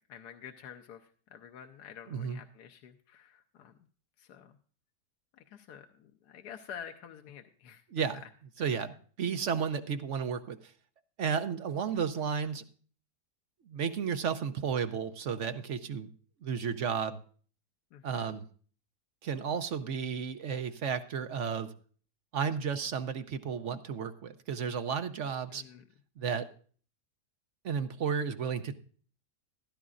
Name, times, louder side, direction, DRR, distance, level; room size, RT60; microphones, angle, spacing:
voice 1, 0.1-1.0 1.3-3.7 4.2-4.5 5.5-7.8 8.6-8.7 17.9-18.3 25.5-25.8, left 8 dB, 85° left, 5 dB, 1.3 m, -48 dB
voice 2, 2.1-2.4 7.9-8.2 8.6-10.7 11.2-12.6 13.7-16.1 16.4-17.2 18.0-18.4 19.2-21.7 22.3-25.6 26.2-26.5 27.6-28.8, right 6 dB, 60° right, 9 dB, 0.9 m, -33 dB
15.0 x 12.0 x 2.5 m, 0.43 s
omnidirectional pair, 1.7 m